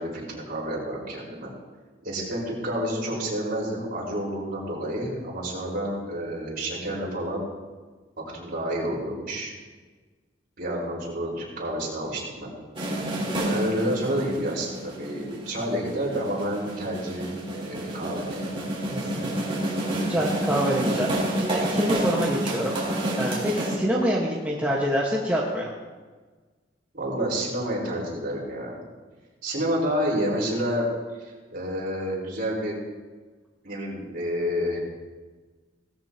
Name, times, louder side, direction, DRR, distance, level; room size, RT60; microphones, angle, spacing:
voice 1, 0.0-1.5 2.0-7.4 8.3-9.5 10.6-12.5 13.4-18.7 26.9-28.8 29.4-30.9 31.2-32.8 33.6-34.8, equal, 50° right, -4 dB, 4.7 m, -29 dB
sound 1, 12.7-23.7, right 1 dB, 30° right, 3.6 m, -29 dB
voice 2, 18.9-19.6 20.0-21.1 21.4-22.8 23.2-25.7, equal, 10° right, -4 dB, 1.4 m, -26 dB
18.0 x 13.5 x 2.9 m, 1.4 s
head